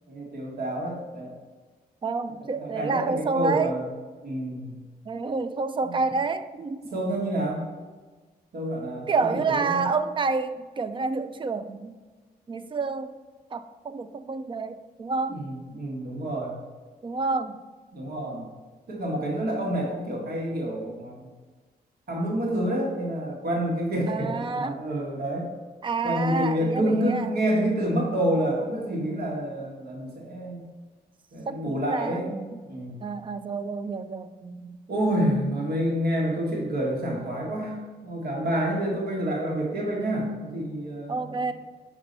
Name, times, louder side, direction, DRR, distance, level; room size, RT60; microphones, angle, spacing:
voice 1, 0.1-1.3 2.6-3.9 4.2-4.7 5.8-6.0 6.9-7.7 8.5-9.9 15.3-16.5 17.9-18.5 18.9-21.3 22.1-25.5 26.0-30.6 31.3-32.3 32.7-33.1 34.9-41.2, right 1 dB, 75° right, -2 dB, 1.7 m, -28 dB
voice 2, 2.0-3.7 5.1-6.9 9.1-12.0 12.5-13.1 13.5-15.4 17.0-17.6 24.1-24.8 25.8-27.4 31.5-32.6 33.0-34.8 41.1-41.5, right 4 dB, 30° right, 11 dB, 0.3 m, -29 dB
5.9 x 5.6 x 5.2 m, 1.3 s
wide cardioid pair, 170°, 17 cm